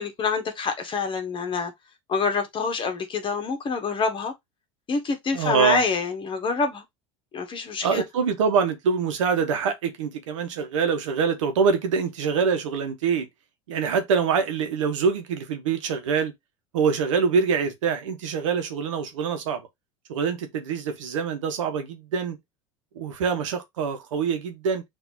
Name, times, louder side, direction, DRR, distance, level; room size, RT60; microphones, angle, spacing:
voice 1, 0.0-1.7 2.1-4.3 4.9-6.8 7.3-8.0, left 5 dB, 30° left, 1.2 m, -26 dB
voice 2, 5.3-5.8 7.8-13.3 13.7-16.3 16.7-19.7 20.1-22.4 22.9-24.8, right 6 dB, 75° right, 1.0 m, -25 dB
5.8 x 2.7 x 2.6 m
hypercardioid pair, 80°, 16 cm